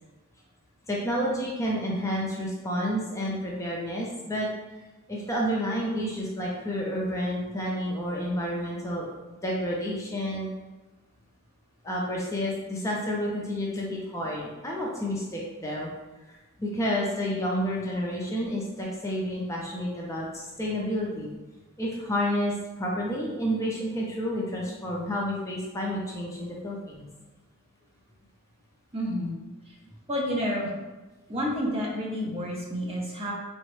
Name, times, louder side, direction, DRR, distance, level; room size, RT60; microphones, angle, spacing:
voice 1, 0.9-4.5 5.1-10.5 11.8-15.9 16.3-21.3 21.8-27.1, equal, 15° left, -3 dB, 0.4 m, -30 dB
voice 2, 28.9-29.3 30.1-30.7 31.3-33.3, equal, 25° right, -3 dB, 0.7 m, -29 dB
3.6 x 2.0 x 3.0 m, 1.1 s
head